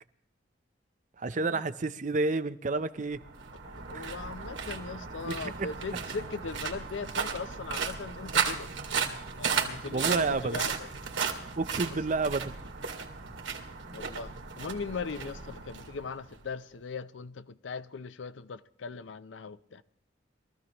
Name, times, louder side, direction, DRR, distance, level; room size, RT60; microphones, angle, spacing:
voice 1, 1.2-3.2 3.9-4.3 5.3-5.7 9.9-10.6 11.6-12.6, right 3 dB, 40° right, 0.6 m, -30 dB
sound 1, 3.1-16.5, right 6 dB, 90° right, 2.1 m, -35 dB
voice 2, 3.6-8.7 9.4-10.9 13.9-19.8, left 4 dB, 85° left, 0.6 m, -39 dB
22.5 x 14.5 x 3.0 m
head